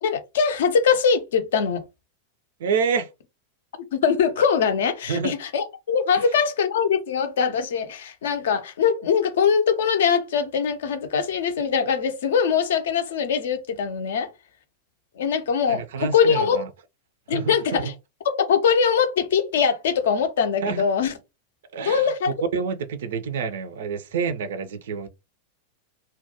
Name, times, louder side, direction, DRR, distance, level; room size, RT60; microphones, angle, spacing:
voice 1, 0.0-1.8 3.8-14.3 15.2-16.6 17.3-17.9 18.2-21.1 21.8-22.3, left 6 dB, 60° left, 0.4 m, -22 dB
voice 2, 2.6-3.1 5.1-5.3 15.7-16.7 17.3-17.8 20.6-20.8 21.7-22.1 22.5-25.1, right 6 dB, 60° right, 0.3 m, -27 dB
2.3 x 2.1 x 2.7 m
figure-of-eight pair, 90°, 0 cm